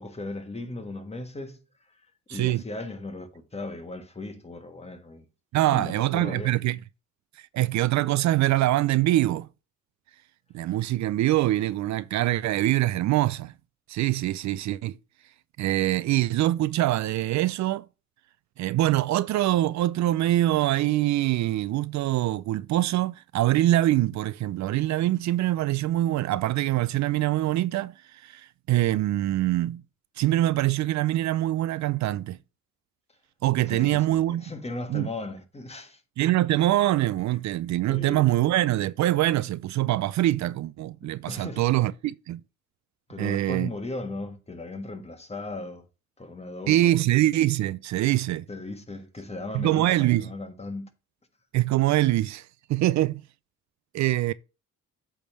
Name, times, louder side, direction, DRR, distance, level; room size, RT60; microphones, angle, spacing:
voice 1, 0.0-1.6 1.9-2.0 2.3-5.2 5.7-6.6 33.7-36.0 37.9-38.3 41.3-41.7 43.1-45.8 46.2-46.9 48.5-50.9, left 2 dB, 20° left, 1.6 m, -37 dB
voice 2, 2.3-2.6 5.5-6.8 7.5-9.5 10.5-13.5 13.9-15.0 15.6-17.8 18.6-27.9 28.2-29.8 30.2-32.4 33.4-34.4 34.9-35.1 36.2-42.4 43.2-43.7 46.7-48.5 49.5-50.3 51.5-52.4 52.7-53.2 53.9-54.3, right 15 dB, 70° right, 0.5 m, -24 dB
8.4 x 3.6 x 6.1 m
cardioid pair, 90°, 30 cm